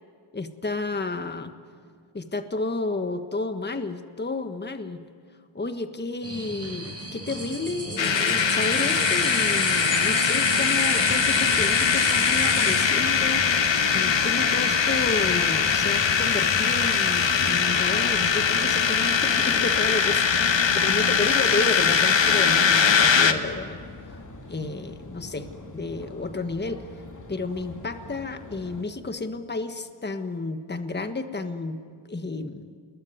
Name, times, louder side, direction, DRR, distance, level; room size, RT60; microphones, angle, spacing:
voice 1, 0.3-1.5 2.1-5.0 5.5-20.2 20.8-23.8 24.0-24.2 24.5-25.5 25.7-26.8 27.3-31.8 32.1-32.7, left 3 dB, 20° left, 8 dB, 1.4 m, -31 dB
sound 1, 6.2-16.2, right 2 dB, 30° right, 6.5 m, -33 dB
sound 2, 8.0-23.3, left 6 dB, 60° left, 1.6 m, -21 dB
sound 3, 8.9-28.8, left 2 dB, 35° left, 2.9 m, -42 dB
28.0 x 21.0 x 9.5 m, 2.2 s
wide cardioid pair, 90°, 49 cm